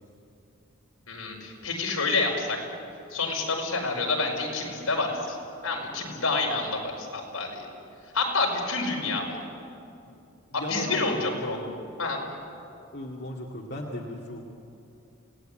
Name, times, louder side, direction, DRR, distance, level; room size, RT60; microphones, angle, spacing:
voice 1, 1.1-2.6 3.1-5.4 5.6-7.7 8.1-9.4 10.5-11.6 12.0-12.2, left 3 dB, 85° left, 0 dB, 5.3 m, -28 dB
voice 2, 10.5-11.7 12.9-14.4, left 1 dB, 50° left, -1 dB, 2.2 m, -36 dB
28.5 x 18.5 x 9.0 m, 2.7 s
head